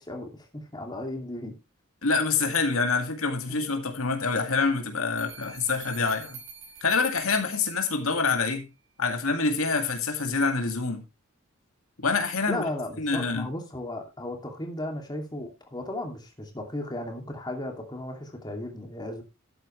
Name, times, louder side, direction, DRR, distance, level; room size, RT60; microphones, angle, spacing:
voice 1, 0.0-1.5 3.5-3.6 12.5-19.2, left 1 dB, 20° left, 2.6 m, -35 dB
voice 2, 2.0-6.4 6.8-8.7 9.0-11.0 12.0-12.6 13.0-13.5, left 4 dB, 85° left, 2.2 m, -26 dB
sound 1, 5.2-8.2, right 6 dB, 75° right, 5.6 m, -46 dB
12.5 x 9.0 x 3.2 m
head